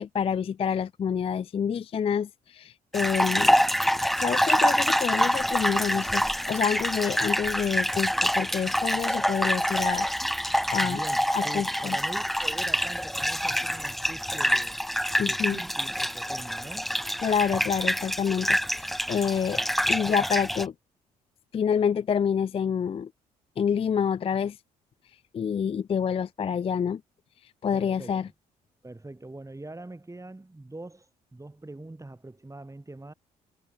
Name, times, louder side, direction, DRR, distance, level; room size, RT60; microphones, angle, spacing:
voice 1, 0.0-3.6 4.2-10.1 10.7-11.0 11.3-12.0 15.2-15.6 17.2-19.6 19.9-20.7 21.5-23.1 23.6-24.6 25.3-27.0 27.6-28.3, left 7 dB, 30° left, 0.4 m, -27 dB
sound 1, 2.9-20.7, equal, ahead, 0.7 m, -26 dB
voice 2, 10.8-14.8 15.2-16.9 27.7-28.3 28.8-33.1, right 2 dB, 15° right, 5.8 m, -43 dB
hypercardioid pair, 45°, 20 cm